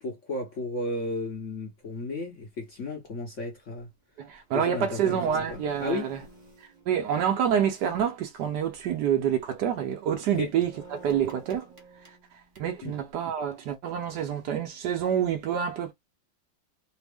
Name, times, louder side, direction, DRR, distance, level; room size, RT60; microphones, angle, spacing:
voice 1, 0.0-3.9 4.5-5.2 5.5-6.1 10.4-10.5 12.8-12.9, left 2 dB, 50° left, 1.0 m, -33 dB
sound 1, 1.3-1.4 1.9-2.2 4.1-4.2 4.3-7.7 8.6-8.9 9.2-9.5 9.9-13.1, right 3 dB, 35° right, 0.8 m, -51 dB
voice 2, 4.2-6.2 6.9-11.7 12.6-15.9, right 8 dB, 70° right, 1.2 m, -27 dB
3.3 x 2.0 x 3.4 m
omnidirectional pair, 2.0 m